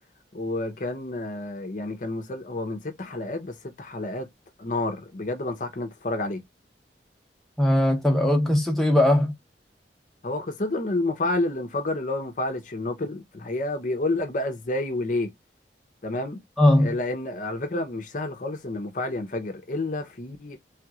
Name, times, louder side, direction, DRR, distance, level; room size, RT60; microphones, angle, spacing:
voice 1, 0.3-4.3 4.6-6.4 10.2-15.3 16.0-16.4 16.8-20.6, left 2 dB, 45° left, 0.7 m, -29 dB
voice 2, 7.6-9.3 16.6-16.9, left 1 dB, ahead, 0.9 m, -19 dB
3.4 x 3.0 x 2.3 m
head